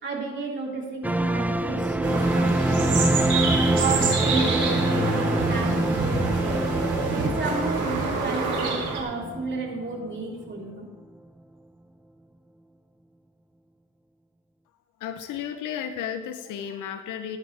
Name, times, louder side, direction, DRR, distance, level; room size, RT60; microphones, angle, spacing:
voice 1, 0.0-3.0 3.8-6.6 7.1-10.9, right 3 dB, 40° right, -2 dB, 3.9 m, -32 dB
sound 1, 1.0-10.2 10.5-10.6, right 1 dB, 5° right, 0.6 m, -25 dB
sound 2, 2.0-9.0, right 4 dB, 70° right, 3.8 m, -27 dB
voice 2, 15.0-17.4, left 9 dB, 85° left, 8 dB, 0.8 m, -33 dB
16.5 x 11.5 x 3.5 m, 1.3 s
cardioid pair, 90°, 30 cm